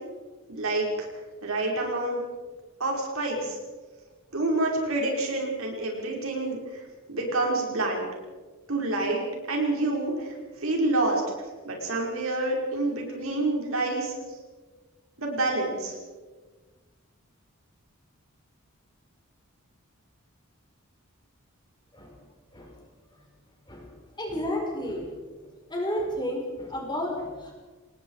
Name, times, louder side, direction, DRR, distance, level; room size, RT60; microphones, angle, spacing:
voice 1, 0.5-1.1 1.4-2.2 2.8-3.6 4.3-6.8 7.1-8.1 8.7-10.3 10.6-11.2 11.6-14.1 15.2-15.9, right 2 dB, 70° right, 0 dB, 5.5 m, -27 dB
voice 2, 24.2-25.1 25.7-27.5, left 1 dB, 20° left, 0 dB, 5.2 m, -31 dB
27.5 x 20.0 x 5.0 m, 1.3 s
head